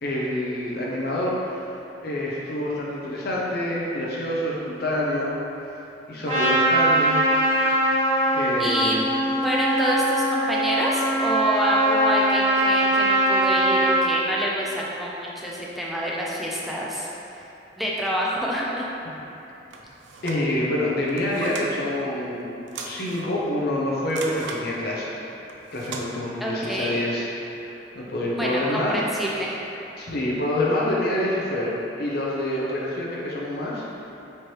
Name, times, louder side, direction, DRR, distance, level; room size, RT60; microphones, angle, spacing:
voice 1, 0.0-1.7 2.0-5.4 6.1-7.2 8.3-9.1 20.2-25.2 25.7-27.3 27.6-28.9 30.0-33.8, left 1 dB, 55° left, -4 dB, 0.7 m, -27 dB
Trumpet, 6.2-14.1, right 1 dB, 35° right, 0.9 m, -21 dB
voice 2, 8.6-9.0 9.4-17.1 17.8-18.9 26.4-27.0 28.4-29.5, equal, ahead, -5 dB, 0.4 m, -27 dB
sound 1, 19.7-20.4 21.0-21.7 22.7-23.4 24.1-24.6 25.5-26.1, right 3 dB, 80° right, 0.4 m, -37 dB
4.4 x 3.1 x 3.1 m, 3.0 s
head